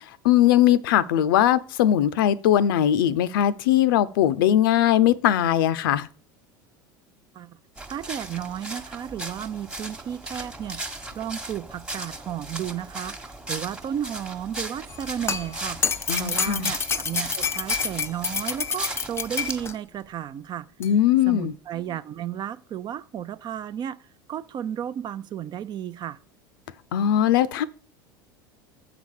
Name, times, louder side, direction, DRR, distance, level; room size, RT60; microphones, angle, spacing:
voice 1, 0.2-6.1 16.1-16.7 20.8-21.5 26.9-27.6, left 11 dB, 75° left, 0.6 m, -20 dB
sound 1, 7.8-19.7, right 2 dB, 5° right, 1.2 m, -37 dB
voice 2, 7.9-10.8 11.1-13.2 13.5-20.7 21.3-24.0 24.3-26.2, right 10 dB, 40° right, 0.5 m, -33 dB
sound 2, 14.9-19.7 20.8-20.9, left 6 dB, 20° left, 0.5 m, -28 dB
7.1 x 4.1 x 6.4 m
hypercardioid pair, 85°, 12 cm